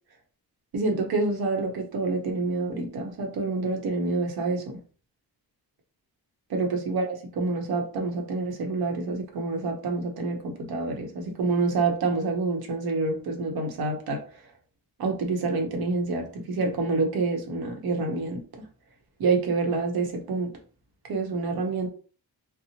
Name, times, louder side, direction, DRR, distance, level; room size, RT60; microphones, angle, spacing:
voice 1, 0.7-4.8 6.5-14.4 15.0-18.4 19.2-20.5 21.0-21.9, right 3 dB, 65° right, 3 dB, 0.8 m, -27 dB
2.8 x 2.0 x 2.8 m, 0.40 s
wide cardioid pair, 145°, 39 cm